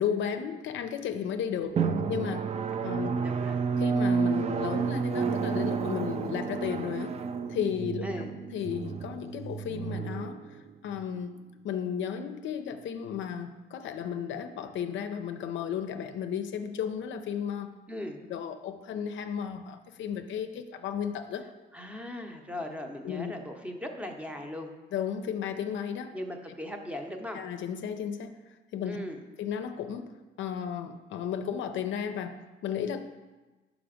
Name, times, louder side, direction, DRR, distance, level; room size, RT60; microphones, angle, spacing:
voice 1, 0.0-1.7 2.1-2.5 2.8-3.2 3.8-7.2 7.5-8.1 8.5-10.4 10.8-11.4 11.6-17.7 18.3-21.5 23.0-23.3 24.9-26.1 27.3-28.3 28.7-29.0 29.4-33.0, left 8 dB, 70° left, 8 dB, 0.5 m, -34 dB
Drum, 1.8-11.0, right 5 dB, 35° right, 0.4 m, -30 dB
voice 2, 3.0-3.6 8.0-8.3 17.9-18.2 21.7-24.7 26.1-27.4 28.8-29.2, left 1 dB, 5° right, 3 dB, 0.7 m, -38 dB
5.0 x 4.9 x 5.0 m, 1.2 s
cardioid pair, 90°, 20 cm